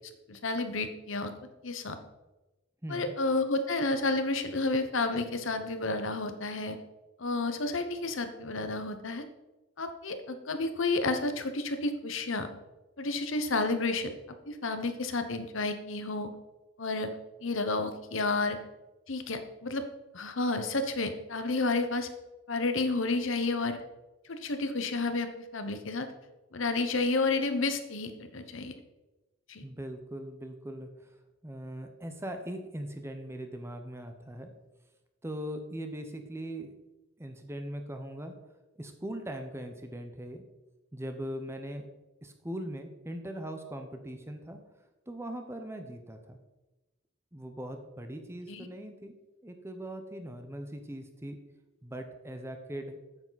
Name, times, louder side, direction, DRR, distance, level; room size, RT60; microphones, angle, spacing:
voice 1, 0.3-1.3 1.6-2.0 2.9-6.8 7.2-9.2 9.8-12.5 13.0-14.1 14.5-16.3 16.8-17.1 17.4-18.6 19.1-19.8 20.1-22.1 22.5-23.8 24.3-26.1 26.5-28.7 29.5-29.6 48.5-48.7, left 3 dB, 65° left, 9 dB, 1.0 m, -31 dB
voice 2, 2.8-3.1 29.6-31.1 31.4-34.5 35.2-36.7 37.2-38.3 38.8-40.4 40.9-41.9 42.2-44.6 45.1-46.4 47.3-49.1 49.4-51.4 51.8-53.0, right 1 dB, 10° right, 6 dB, 0.8 m, -40 dB
8.8 x 8.6 x 4.1 m, 1.1 s
head